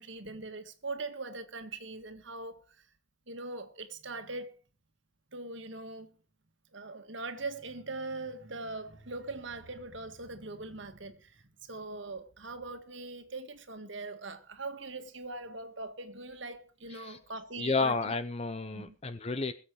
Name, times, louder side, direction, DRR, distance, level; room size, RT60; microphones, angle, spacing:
voice 1, 0.0-2.8 3.3-4.6 5.3-6.1 6.7-18.1 18.7-19.0, right 3 dB, 65° right, 1.7 m, -41 dB
voice 2, 17.6-19.5, left 4 dB, 30° left, 0.7 m, -31 dB
21.0 x 7.7 x 4.8 m
head